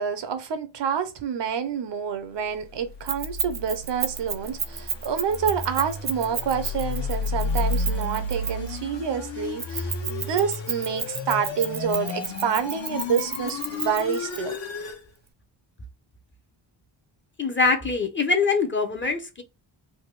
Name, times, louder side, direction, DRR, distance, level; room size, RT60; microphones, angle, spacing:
voice 1, 0.0-14.6, right 7 dB, 65° right, 0.7 m, -28 dB
sound 1, 2.8-15.0, left 3 dB, 65° left, 1.1 m, -32 dB
Keys jangling, 3.1-8.8 9.6-14.4, right 5 dB, 25° right, 0.3 m, -31 dB
voice 2, 17.4-19.4, left 4 dB, 25° left, 0.7 m, -23 dB
3.4 x 2.2 x 3.1 m
wide cardioid pair, 120°, 47 cm